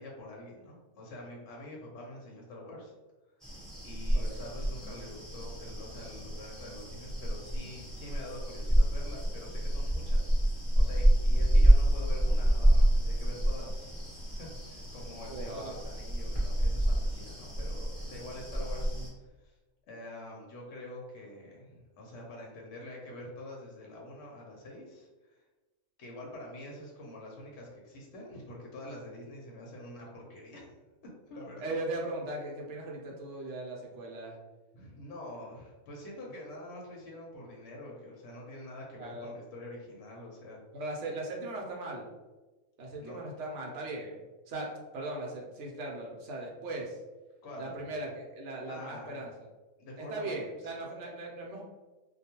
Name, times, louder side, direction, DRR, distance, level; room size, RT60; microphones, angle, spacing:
voice 1, 0.0-2.9 3.8-19.0 19.4-19.5 19.8-25.4 26.0-30.8 31.3-31.7 34.7-40.6 43.0-43.2 47.4-47.9 48.7-49.2 49.8-50.5, left 1 dB, 65° left, -2 dB, 0.8 m, -46 dB
sound 1, 3.4-19.1, right 1 dB, ahead, 0.9 m, -28 dB
voice 2, 15.3-15.7 18.9-19.1 31.6-34.4 39.0-39.3 40.7-42.1 42.8-47.0 47.6-49.5 50.0-51.6, right 2 dB, 65° right, -1 dB, 0.9 m, -38 dB
2.3 x 2.2 x 2.8 m, 1.2 s
omnidirectional pair, 1.4 m